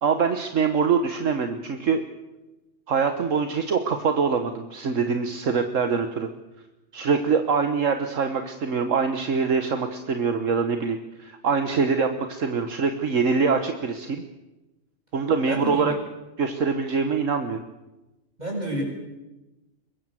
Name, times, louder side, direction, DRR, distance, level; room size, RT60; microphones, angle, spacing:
voice 1, 0.0-2.0 2.9-6.3 6.9-14.2 15.1-15.9 16.4-17.6, right 5 dB, 70° right, 7 dB, 1.6 m, -24 dB
voice 2, 15.5-15.9 18.4-18.8, equal, 30° right, 0 dB, 7.7 m, -29 dB
24.0 x 21.0 x 7.7 m, 1.0 s
omnidirectional pair, 1.4 m